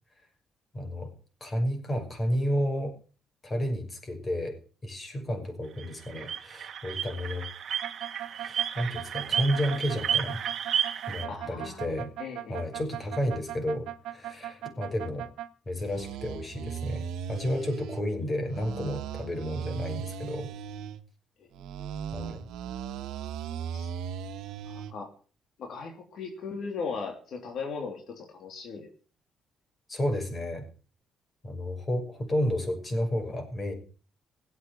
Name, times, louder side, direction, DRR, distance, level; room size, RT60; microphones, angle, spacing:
voice 1, 0.7-1.1 1.4-2.9 3.4-4.6 4.8-7.5 8.4-10.4 11.1-12.1 12.5-15.3 15.7-20.5 22.1-22.4 29.9-30.7 31.4-33.7, equal, 30° left, 5 dB, 6.2 m, -31 dB
sound 1, 5.8-11.3, right 9 dB, 60° right, 1.5 m, -32 dB
sound 2, 7.8-15.5 15.8-18.0 18.5-21.0 21.5-24.9, right 9 dB, 85° right, 1.4 m, -38 dB
voice 2, 11.3-11.8 12.2-12.6 18.2-18.3 21.4-21.5 23.7-23.9 24.7-25.1 25.6-28.9, left 5 dB, 65° left, 3 dB, 3.3 m, -38 dB
18.0 x 8.3 x 7.8 m, 0.41 s
cardioid pair, 90°, 0 cm